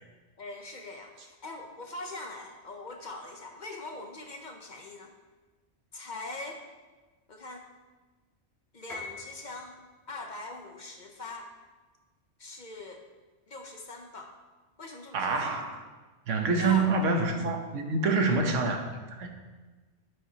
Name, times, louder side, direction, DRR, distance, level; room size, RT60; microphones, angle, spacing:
voice 1, 0.4-5.1 5.9-6.6 7.3-7.6 8.7-9.8 10.1-11.5 12.4-13.0 13.5-14.3 14.8-15.6 16.6-16.9, left 2 dB, 45° left, 3 dB, 0.9 m, -42 dB
Piano, 8.9-9.8, left 3 dB, ahead, 1.8 m, -43 dB
voice 2, 15.1-15.9 16.3-19.3, right 3 dB, 85° right, 4 dB, 1.3 m, -27 dB
10.0 x 8.5 x 2.9 m, 1.3 s
omnidirectional pair, 1.2 m